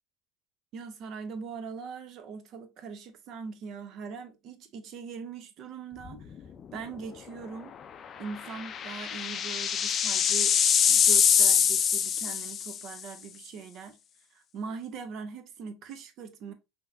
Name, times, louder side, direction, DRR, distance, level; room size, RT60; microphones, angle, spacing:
voice 1, 0.7-6.3 6.7-7.8 8.2-10.6 10.9-14.0 14.3-16.5, right 5 dB, 50° right, 0.8 m, -41 dB
sound 1, 6.1-6.4 6.8-6.9 8.3-12.9, left 8 dB, 40° left, 0.4 m, -24 dB
5.6 x 2.9 x 2.6 m
hypercardioid pair, 70°, 0 cm